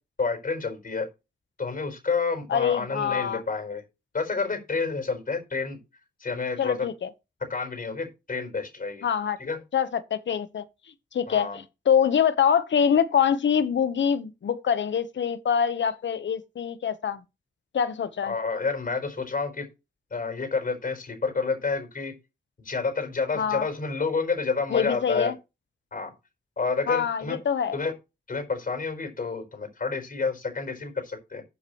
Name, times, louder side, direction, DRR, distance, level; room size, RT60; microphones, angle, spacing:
voice 1, 0.2-1.1 1.6-3.8 4.1-5.8 6.2-6.9 7.5-9.1 9.4-9.6 11.3-11.6 18.2-19.7 20.1-22.1 22.6-25.3 25.9-26.1 26.6-27.4 27.7-27.9 28.3-31.4, left 4 dB, 50° left, 4.5 m, -29 dB
voice 2, 2.5-3.4 6.6-7.1 9.0-9.4 9.7-10.6 11.1-17.2 17.7-18.4 23.4-23.6 24.7-25.3 26.9-27.8, left 8 dB, 85° left, 1.0 m, -25 dB
13.5 x 7.3 x 3.0 m
wide cardioid pair, 105°, 19 cm